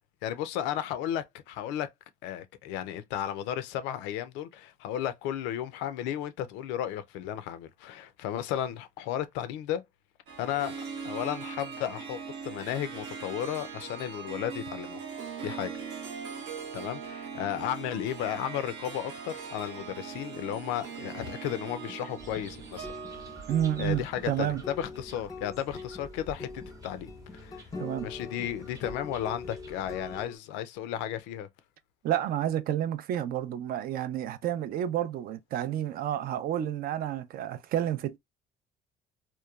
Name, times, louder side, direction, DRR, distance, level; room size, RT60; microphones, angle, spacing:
voice 1, 0.2-1.9 2.2-9.8 10.4-10.8 11.0-15.0 15.4-15.7 16.7-22.9 23.8-26.5 26.8-27.7 28.0-31.5, left 11 dB, 90° left, 0.4 m, -34 dB
Harp, 10.3-24.8, right 6 dB, 80° right, 0.8 m, -41 dB
sound 1, 20.5-30.4, left 4 dB, 20° left, 0.5 m, -44 dB
sound 2, 22.2-30.3, right 1 dB, 20° right, 0.7 m, -49 dB
voice 2, 23.5-24.6 27.8-28.1 32.0-38.2, right 11 dB, 55° right, 0.4 m, -30 dB
2.9 x 2.2 x 2.3 m
cardioid pair, 105°, 18 cm